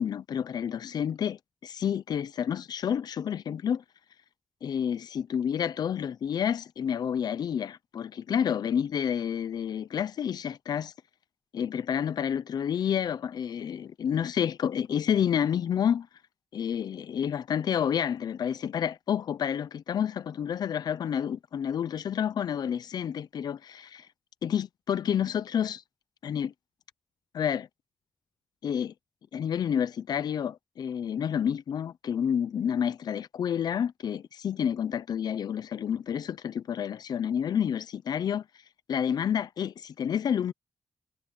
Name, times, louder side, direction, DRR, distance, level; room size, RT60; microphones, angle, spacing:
voice 1, 0.0-3.8 4.6-10.9 11.5-16.1 16.5-24.1 24.4-25.8 26.2-26.5 27.3-27.7 28.6-28.9 29.3-38.4 38.9-40.5, left 8 dB, 80° left, 0.8 m, -29 dB
cardioid pair, 50°, 7 cm